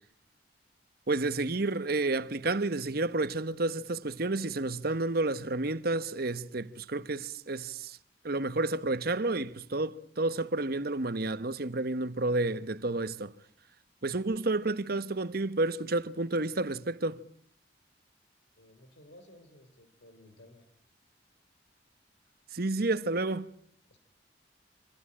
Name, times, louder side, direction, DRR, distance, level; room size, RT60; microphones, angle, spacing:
voice 1, 1.1-8.0 8.2-13.3 14.0-17.2 22.5-23.5, right 2 dB, 55° right, 1.2 m, -30 dB
voice 2, 18.6-20.7 23.9-24.0, left 1 dB, 75° left, 3.6 m, -56 dB
27.5 x 25.0 x 8.7 m
head